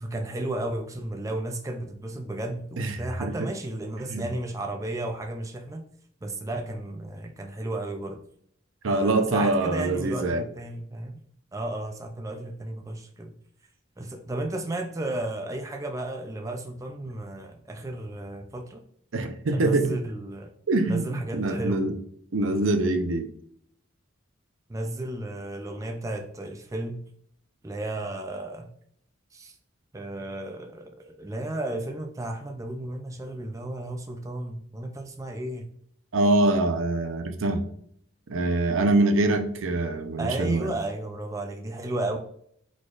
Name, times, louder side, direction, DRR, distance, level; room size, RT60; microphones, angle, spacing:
voice 1, 0.0-5.8 6.2-8.2 8.9-11.2 11.5-13.3 14.0-18.8 19.5-20.5 20.9-21.9 24.7-27.0 27.6-28.7 29.3-29.6 29.9-35.7 40.2-42.2, right 1 dB, 15° right, 4 dB, 0.4 m, -33 dB
voice 2, 2.8-3.3 4.1-4.2 8.8-10.4 19.1-20.0 20.7-21.9 22.3-23.3 36.1-37.6 38.3-40.7, right 2 dB, 80° right, 5 dB, 0.6 m, -24 dB
4.7 x 4.1 x 2.4 m, 0.65 s
head